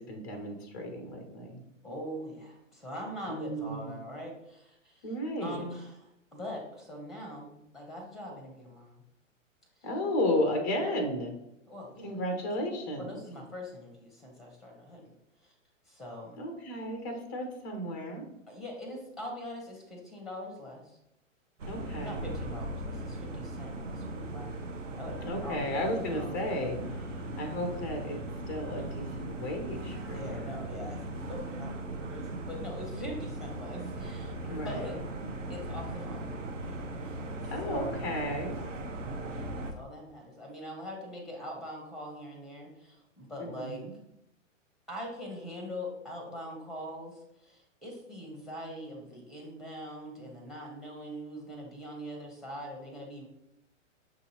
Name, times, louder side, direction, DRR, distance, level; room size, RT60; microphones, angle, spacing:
voice 1, 0.0-1.6 3.3-4.0 5.0-5.6 9.8-11.3 12.0-13.2 16.4-18.3 21.7-22.3 25.2-26.8 27.4-28.2 28.5-30.5 33.7-34.1 34.5-35.0 37.5-38.6 43.4-43.9, left 1 dB, 15° left, 4 dB, 0.3 m, -34 dB
voice 2, 1.8-5.1 5.4-9.0 11.7-12.1 13.0-15.1 15.4-15.5 15.8-16.4 18.5-21.0 22.0-25.6 26.1-26.3 28.7-28.9 30.1-35.0 35.5-36.3 37.0-37.2 37.4-38.0 39.3-43.8 44.9-53.3, equal, ahead, 1 dB, 0.7 m, -42 dB
sound 1, 21.6-39.7, right 1 dB, 70° right, 0.8 m, -38 dB
sound 2, 25.6-30.6, left 1 dB, 40° right, 1.3 m, -51 dB
6.1 x 2.7 x 2.8 m, 0.85 s
figure-of-eight pair, 115°, 39 cm